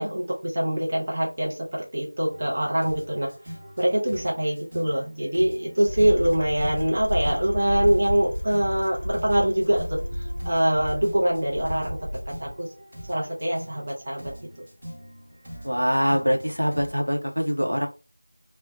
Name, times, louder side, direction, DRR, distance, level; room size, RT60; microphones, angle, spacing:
voice 1, 0.0-3.3 3.8-10.0 10.4-12.0 12.4-12.7 13.1-14.5, right 1 dB, 25° right, -3 dB, 0.6 m, -24 dB
sound 1, 2.3-16.9, equal, 5° right, 1.0 m, -43 dB
sound 2, 5.9-12.6, equal, 70° left, 0.4 m, -32 dB
voice 2, 15.6-17.9, equal, 90° right, 3 dB, 0.7 m, -24 dB
2.6 x 2.1 x 2.2 m, 0.32 s
figure-of-eight pair, 175°, 0 cm